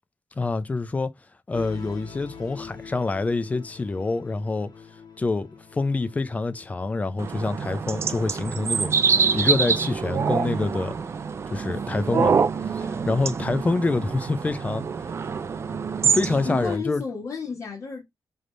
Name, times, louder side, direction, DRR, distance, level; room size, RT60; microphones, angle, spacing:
voice 1, 0.4-1.1 1.5-4.7 5.2-10.9 11.5-12.4 12.8-14.8 16.0-17.0, left 3 dB, 20° left, 0.4 m, -26 dB
sound 1, 1.5-8.3, left 6 dB, 80° left, 1.6 m, -44 dB
sound 2, 7.2-16.8, right 5 dB, 40° right, 0.4 m, -25 dB
voice 2, 16.4-18.0, left 5 dB, 55° left, 1.4 m, -32 dB
3.9 x 3.4 x 3.2 m
wide cardioid pair, 165°, 7 cm